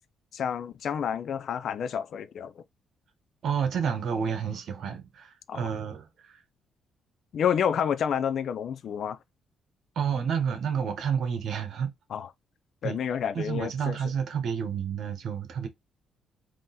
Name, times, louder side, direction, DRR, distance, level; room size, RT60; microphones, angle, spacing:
voice 1, 0.3-2.6 5.5-5.7 7.3-9.2 12.1-12.3 12.8-14.0, left 8 dB, 65° left, 0.4 m, -29 dB
voice 2, 3.4-6.4 9.9-11.9 12.8-13.0 13.3-15.7, right 7 dB, 65° right, 1.1 m, -30 dB
3.8 x 2.8 x 4.0 m
cardioid pair, 90°, 0 cm